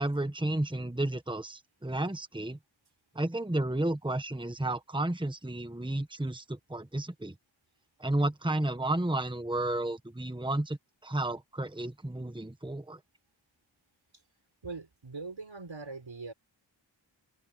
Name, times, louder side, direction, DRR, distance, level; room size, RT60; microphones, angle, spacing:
voice 1, 0.0-2.6 3.1-7.3 8.0-13.0, right 1 dB, 10° right, 1.4 m, -32 dB
voice 2, 14.6-16.3, right 3 dB, 80° right, 6.4 m, -41 dB
open air
wide cardioid pair, 40°, 45 cm